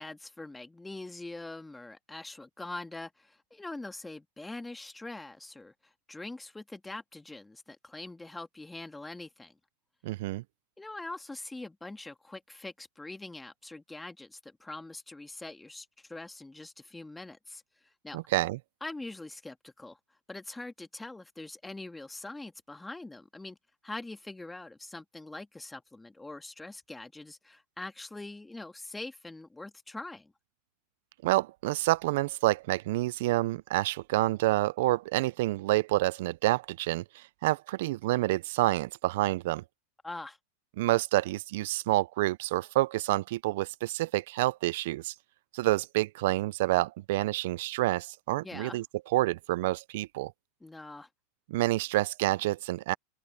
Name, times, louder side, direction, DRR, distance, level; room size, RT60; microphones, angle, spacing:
voice 1, 0.0-9.5 10.8-17.6 18.0-18.2 18.8-20.0 20.3-23.6 23.8-30.3 40.0-40.4 48.4-48.8 50.6-51.1, left 2 dB, 10° left, 2.2 m, -43 dB
voice 2, 10.0-10.4 18.1-18.6 31.2-39.6 40.8-45.1 45.5-48.8 49.1-50.3 51.5-52.9, right 18 dB, 70° right, 0.4 m, -28 dB
hypercardioid pair, 115°, 0 cm